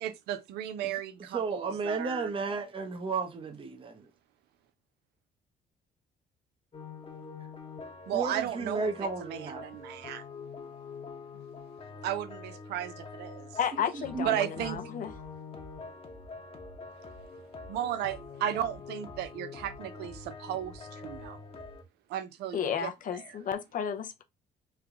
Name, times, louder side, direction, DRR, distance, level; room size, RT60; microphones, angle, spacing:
voice 1, 0.0-2.3 8.1-10.2 12.0-13.5 14.2-14.8 17.7-21.4 22.1-23.4, right 11 dB, 80° right, 0.6 m, -35 dB
voice 2, 1.3-4.1 8.1-9.6 13.7-14.3 14.6-14.7, right 4 dB, 30° right, 0.8 m, -34 dB
sound 1, 6.7-21.8, left 4 dB, 35° left, 1.0 m, -45 dB
voice 3, 13.6-15.1 22.5-24.2, left 8 dB, 55° left, 0.6 m, -32 dB
3.3 x 2.2 x 3.7 m
supercardioid pair, 75°, 17 cm